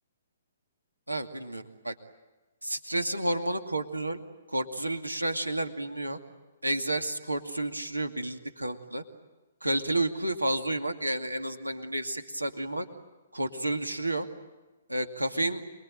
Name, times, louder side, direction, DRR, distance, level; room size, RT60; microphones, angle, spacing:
voice 1, 1.1-1.9 2.6-4.2 4.5-6.2 6.6-9.0 9.6-12.9 13.3-14.3 14.9-15.6, right 1 dB, 85° right, 6 dB, 2.4 m, -31 dB
28.0 x 22.0 x 9.1 m, 1.2 s
figure-of-eight pair, 125°, 0 cm